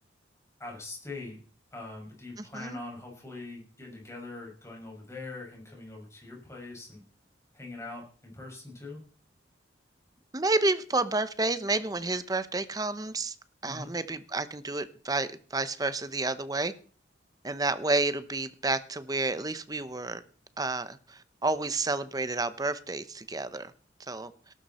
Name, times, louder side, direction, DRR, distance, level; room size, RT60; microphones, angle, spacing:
voice 1, 0.6-1.4 1.7-7.0 7.5-9.0 13.6-13.9, left 2 dB, 15° left, -1 dB, 6.4 m, -42 dB
voice 2, 2.4-2.8 10.3-13.4 13.6-16.7 17.4-20.2 20.6-23.7 24.1-24.3, right 2 dB, 20° right, 13 dB, 0.8 m, -30 dB
18.0 x 12.0 x 4.3 m, 0.42 s
head